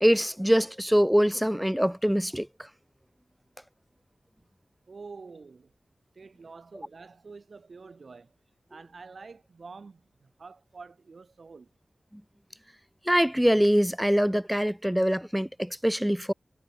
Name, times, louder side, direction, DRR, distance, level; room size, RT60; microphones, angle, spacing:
voice 1, 0.0-2.5 13.1-16.3, equal, 5° right, 0.4 m, -23 dB
voice 2, 4.9-5.7 6.2-8.3 8.7-11.7, right 4 dB, 70° right, 2.3 m, -47 dB
wide cardioid pair, 65°, 0 cm